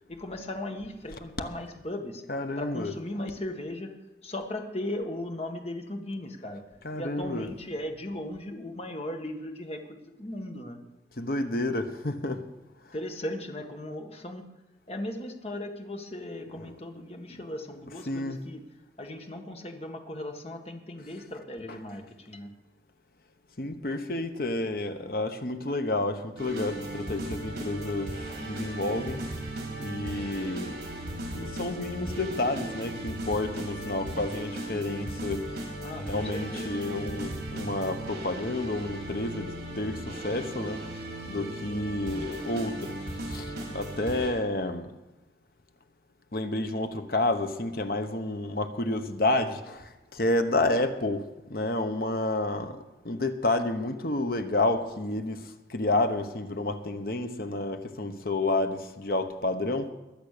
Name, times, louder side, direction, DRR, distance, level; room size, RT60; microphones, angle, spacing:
voice 1, 0.1-2.2 2.6-3.9 4.2-10.8 12.9-14.4 14.9-18.6 19.0-22.5 35.8-36.8, left 1 dB, 35° left, 1.7 m, -37 dB
voice 2, 2.3-2.9 6.8-7.5 11.2-12.5 16.6-16.7 18.1-18.4 23.6-29.3 29.8-30.9 31.3-35.6 35.9-40.9 41.3-44.9 46.3-59.9, left 2 dB, 55° left, 1.2 m, -30 dB
sound 1, 26.4-44.3, right 1 dB, 60° right, 4.8 m, -37 dB
21.5 x 7.6 x 6.8 m
head